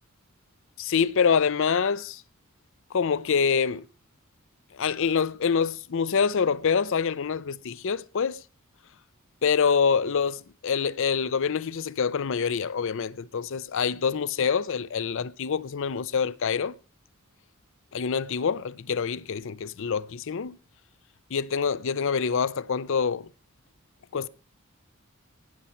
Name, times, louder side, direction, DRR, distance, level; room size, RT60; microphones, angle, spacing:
voice 1, 0.8-2.2 2.9-3.9 4.7-8.4 9.4-16.7 17.9-20.6 21.3-23.3 24.1-24.3, left 6 dB, 65° left, 0.5 m, -26 dB
19.0 x 7.0 x 4.3 m
head